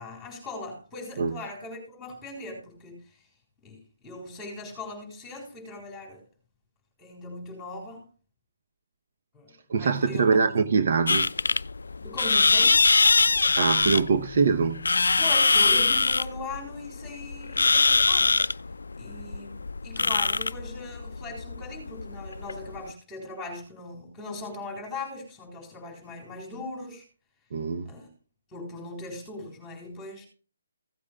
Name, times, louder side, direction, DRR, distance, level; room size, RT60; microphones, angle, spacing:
voice 1, 0.0-3.2 3.6-6.2 7.0-8.0 9.3-9.5 9.8-10.6 12.0-12.9 15.2-18.4 19.0-27.1 27.8-28.1 28.5-30.3, left 2 dB, 5° left, 4.1 m, -39 dB
voice 2, 9.7-11.3 13.5-14.8 27.5-27.9, right 5 dB, 40° right, 0.8 m, -23 dB
sound 1, 11.1-22.9, left 4 dB, 85° left, 0.4 m, -23 dB
16.5 x 8.5 x 2.3 m
hypercardioid pair, 175°, 0 cm